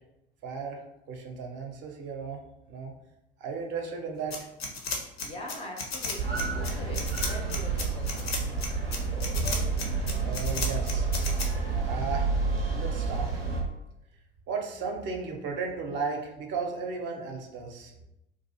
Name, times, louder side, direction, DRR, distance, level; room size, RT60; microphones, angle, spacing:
voice 1, 0.4-0.8 1.1-2.4 2.7-2.9 3.4-4.5 10.2-11.1 11.8-13.3 14.5-17.9, right 5 dB, 40° right, 2 dB, 0.5 m, -35 dB
sound 1, 4.3-11.5, left 4 dB, 80° left, 0.5 m, -33 dB
voice 2, 5.2-8.6, left 1 dB, 20° left, -1 dB, 0.4 m, -43 dB
sound 2, 6.2-13.6, right 4 dB, 85° right, 0.5 m, -29 dB
2.4 x 2.3 x 2.6 m, 0.87 s
figure-of-eight pair, 65°, 30 cm